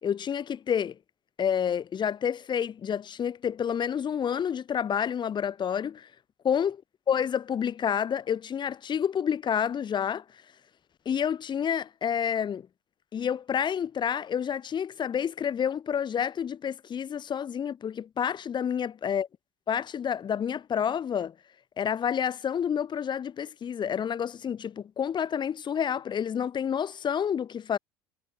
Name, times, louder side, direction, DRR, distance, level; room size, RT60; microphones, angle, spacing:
voice 1, 0.0-1.0 1.4-6.1 6.4-6.8 7.1-10.2 11.1-12.7 13.1-19.3 19.7-21.3 21.8-27.8, left 8 dB, 35° left, 3.6 m, -29 dB
hypercardioid pair, 75°, 13 cm